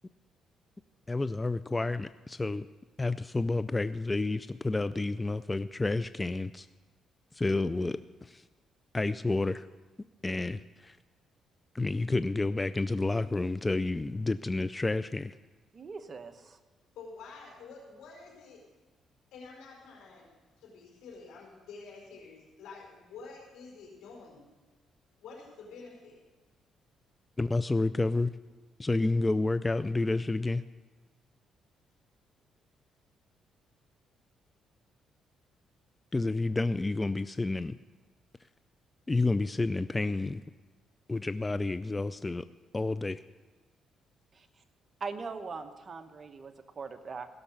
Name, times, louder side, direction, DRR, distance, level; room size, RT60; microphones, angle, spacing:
voice 1, 1.1-2.7 3.0-6.7 7.3-8.4 8.9-9.7 10.2-11.0 11.7-15.3 27.4-28.3 28.8-30.6 36.1-37.8 39.1-40.4 41.1-42.4 42.7-43.2, left 2 dB, 20° left, 13 dB, 0.3 m, -30 dB
voice 2, 15.7-16.6 44.3-44.5 45.0-47.3, right 4 dB, 40° right, 8 dB, 1.0 m, -41 dB
voice 3, 16.9-18.7 19.3-24.5 25.2-26.2, left 4 dB, 85° left, -2 dB, 4.7 m, -49 dB
16.0 x 6.6 x 7.1 m, 1.3 s
cardioid pair, 90°, 0 cm